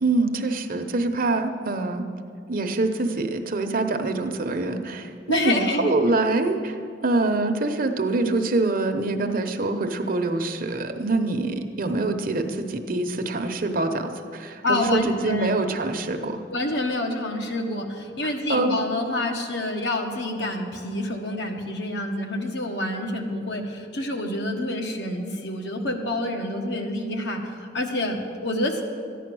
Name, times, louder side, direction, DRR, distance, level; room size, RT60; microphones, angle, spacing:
voice 1, 0.0-2.0 2.5-6.8 7.0-16.4 18.5-18.8, right 2 dB, 50° right, 6 dB, 0.9 m, -25 dB
voice 2, 5.3-5.9 14.6-15.5 16.5-28.8, left 1 dB, 70° left, 3 dB, 1.4 m, -27 dB
14.0 x 10.0 x 6.2 m, 2.3 s
head